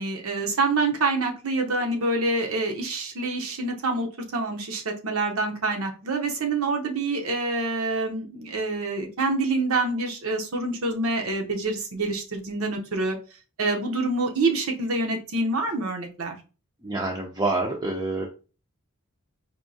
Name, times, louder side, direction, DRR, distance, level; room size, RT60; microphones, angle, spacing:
voice 1, 0.0-13.2 13.6-16.4, right 3 dB, 75° right, 2 dB, 0.8 m, -26 dB
voice 2, 16.8-18.3, right 2 dB, 20° right, -1 dB, 0.5 m, -27 dB
4.5 x 2.7 x 2.7 m, 0.34 s
head